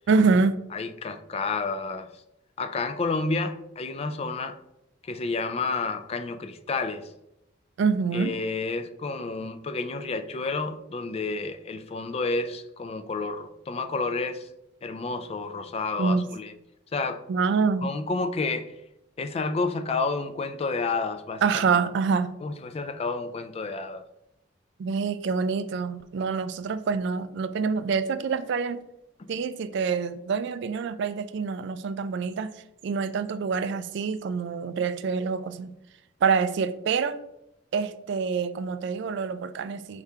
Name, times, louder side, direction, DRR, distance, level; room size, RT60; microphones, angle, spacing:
voice 1, 0.1-0.6 7.8-8.3 16.0-16.3 17.3-17.9 21.4-22.3 24.8-28.8 29.3-32.5 32.8-35.7 36.2-37.2 37.7-40.0, right 5 dB, 60° right, 0.3 m, -26 dB
voice 2, 0.7-2.1 2.6-4.6 5.0-7.1 8.1-14.5 14.8-16.5 16.9-17.2 17.8-18.7 19.2-21.4 22.4-24.0, left 3 dB, 30° left, 0.3 m, -30 dB
4.8 x 3.5 x 2.7 m
head